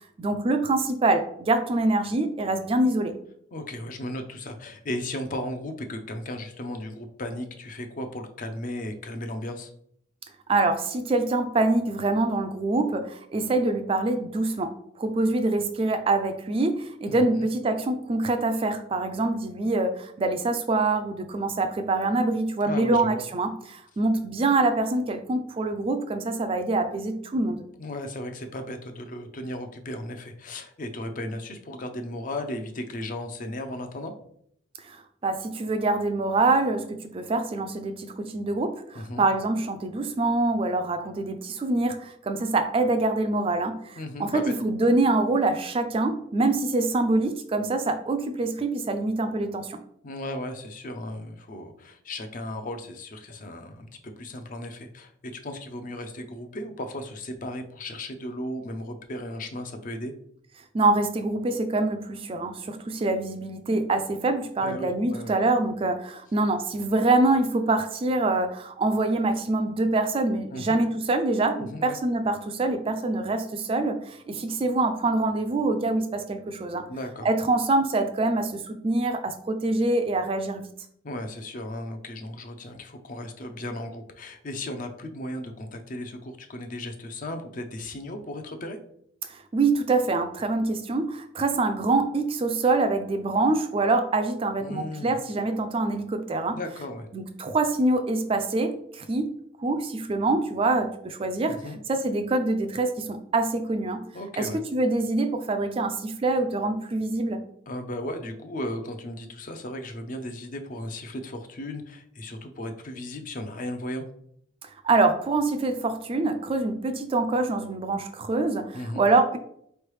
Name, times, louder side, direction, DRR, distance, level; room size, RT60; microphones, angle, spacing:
voice 1, 0.2-3.1 10.5-27.6 34.8-49.8 60.7-76.9 77.2-80.7 89.2-96.6 97.1-99.3 99.6-101.6 101.9-104.0 104.4-107.4 114.6-119.4, right 2 dB, 25° right, 7 dB, 0.3 m, -25 dB
voice 2, 3.5-9.7 17.1-17.5 22.6-23.2 27.8-34.1 38.9-39.3 44.0-44.5 50.0-60.1 64.6-65.3 70.5-70.8 71.7-72.0 76.9-77.3 81.0-88.8 94.6-95.1 96.5-97.1 101.5-101.8 104.1-104.6 107.7-114.1 118.7-119.1, left 1 dB, 40° left, 6 dB, 0.5 m, -35 dB
4.5 x 3.2 x 3.1 m, 0.68 s
head